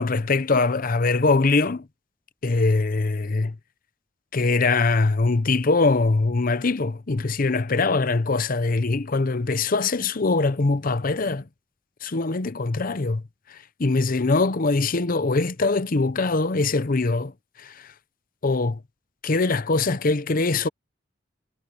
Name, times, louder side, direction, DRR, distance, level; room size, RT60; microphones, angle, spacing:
voice 1, 0.0-1.9 2.4-3.6 4.3-11.5 12.0-13.2 13.5-17.3 17.6-17.9 18.4-18.8 19.2-20.7, left 3 dB, 50° left, 0.8 m, -22 dB
head